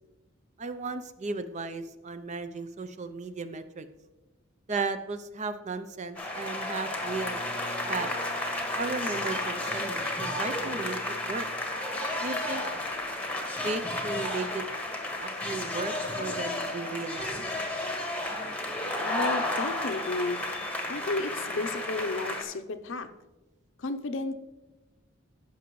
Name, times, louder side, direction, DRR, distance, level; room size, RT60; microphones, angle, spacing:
voice 1, 0.6-3.9 4.7-7.4 7.9-8.1 8.8-11.5 12.2-12.6 13.6-14.6 15.2-17.4, right 3 dB, 35° right, 11 dB, 0.5 m, -35 dB
sound 1, 6.2-22.4, left 1 dB, 5° left, 1.0 m, -32 dB
Bowed string instrument, 7.0-11.8, right 1 dB, 20° right, 2.6 m, -49 dB
voice 2, 19.0-20.4 20.9-23.1 23.8-24.3, left 3 dB, 65° left, 9 dB, 0.6 m, -32 dB
15.0 x 6.0 x 3.1 m, 1.1 s
head